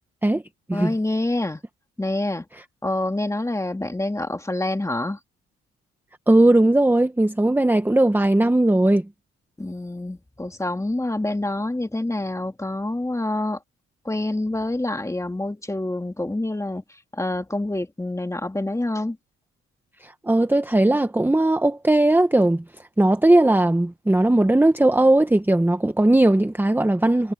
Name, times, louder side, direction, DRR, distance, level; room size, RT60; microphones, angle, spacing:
voice 1, 0.7-1.6 2.0-2.4 2.8-5.2 9.6-13.6 14.0-16.8 17.1-19.2, left 2 dB, 10° left, 2.2 m, -26 dB
voice 2, 6.3-9.0 20.0-22.6 23.0-27.3, right 1 dB, 5° right, 1.2 m, -18 dB
cardioid pair, 90°, 30 cm